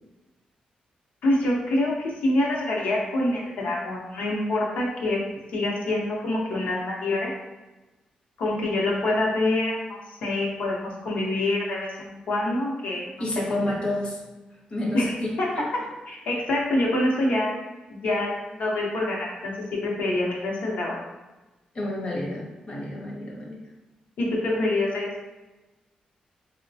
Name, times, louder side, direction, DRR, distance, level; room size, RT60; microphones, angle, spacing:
voice 1, 1.2-5.2 5.5-7.3 8.4-13.1 13.7-13.8 14.9-15.1 15.4-15.5 16.1-17.5 17.9-21.0 24.2-25.1, left 1 dB, 80° left, -2 dB, 0.7 m, -26 dB
voice 2, 13.2-14.2 14.7-15.7 21.7-23.6, left 1 dB, 40° left, -2 dB, 0.7 m, -30 dB
3.9 x 2.1 x 2.6 m, 1.1 s
wide cardioid pair, 170°, 3 cm